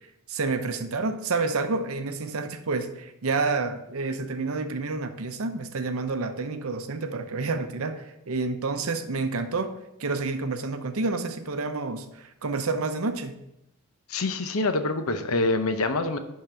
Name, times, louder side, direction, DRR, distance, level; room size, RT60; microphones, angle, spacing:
voice 1, 0.3-9.7 10.0-13.4, right 3 dB, 70° right, 9 dB, 0.7 m, -29 dB
voice 2, 14.1-16.2, left 2 dB, 70° left, 8 dB, 0.7 m, -25 dB
11.0 x 3.9 x 4.4 m, 0.85 s
head